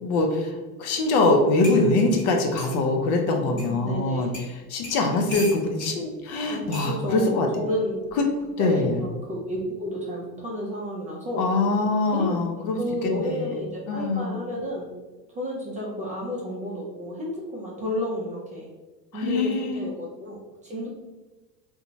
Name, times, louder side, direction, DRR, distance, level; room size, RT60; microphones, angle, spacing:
voice 1, 0.0-7.5 8.6-9.0 11.4-13.6 13.9-14.3 19.1-19.9, left 2 dB, 50° left, 2 dB, 0.6 m, -24 dB
sound 1, 1.6-2.8 3.6-3.7 4.3-4.5 4.8-5.9 6.7-6.9 8.1-8.3, left 1 dB, 30° left, 1.0 m, -38 dB
voice 2, 3.4-4.3 6.5-8.0 8.6-11.5 12.1-12.4 12.7-14.9 15.3-18.7 19.1-20.9, equal, 15° right, -4 dB, 0.4 m, -31 dB
2.6 x 2.2 x 2.6 m, 1.2 s
hypercardioid pair, 85°, 49 cm